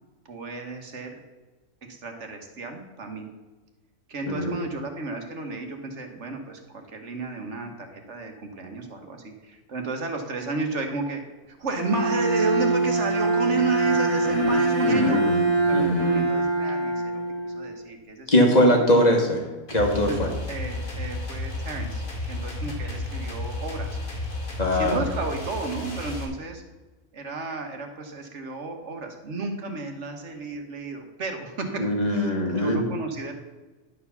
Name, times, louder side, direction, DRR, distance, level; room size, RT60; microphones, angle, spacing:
voice 1, 0.3-1.2 1.8-3.3 4.1-15.2 15.7-18.3 18.7-18.9 20.0-20.2 20.5-24.0 24.7-26.6 27.1-32.3 32.6-33.3, right 3 dB, 55° right, 4 dB, 1.6 m, -32 dB
voice 2, 4.3-4.6 14.8-15.5 15.7-16.2 18.3-20.3 24.6-25.0 31.8-32.9, equal, 30° left, 1 dB, 1.7 m, -22 dB
Bowed string instrument, 11.8-17.7, right 2 dB, 85° left, 3.1 m, -24 dB
sound 1, 19.7-26.2, left 2 dB, 65° left, 2.4 m, -32 dB
11.0 x 4.8 x 6.9 m, 1.2 s
omnidirectional pair, 1.5 m